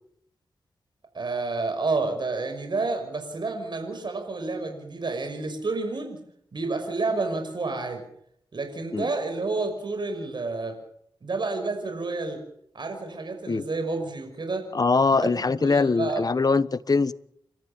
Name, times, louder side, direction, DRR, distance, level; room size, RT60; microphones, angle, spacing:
voice 1, 1.1-6.2 6.5-8.0 8.5-10.8 11.2-12.4 12.7-14.7 15.2-16.2, right 3 dB, 60° right, 6 dB, 6.0 m, -30 dB
voice 2, 14.7-17.1, left 4 dB, 45° left, 16 dB, 1.1 m, -22 dB
29.5 x 13.5 x 7.3 m, 0.69 s
cardioid pair, 55°, 9 cm